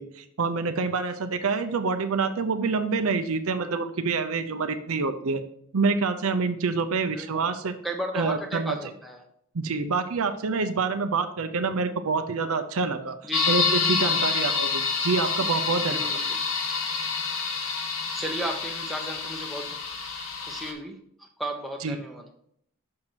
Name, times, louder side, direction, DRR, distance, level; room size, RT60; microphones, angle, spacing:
voice 1, 0.0-5.4 5.7-7.7 8.1-8.8 9.5-13.1 13.5-16.0 21.8-22.0, right 4 dB, 70° right, 9 dB, 0.6 m, -27 dB
voice 2, 7.1-7.5 7.8-9.2 13.2-13.6 15.9-16.3 18.1-19.8 20.5-21.0 21.4-22.2, right 1 dB, ahead, 3 dB, 0.8 m, -34 dB
sound 1, 13.3-20.7, left 5 dB, 65° left, 1.1 m, -27 dB
6.4 x 5.7 x 4.5 m, 0.69 s
head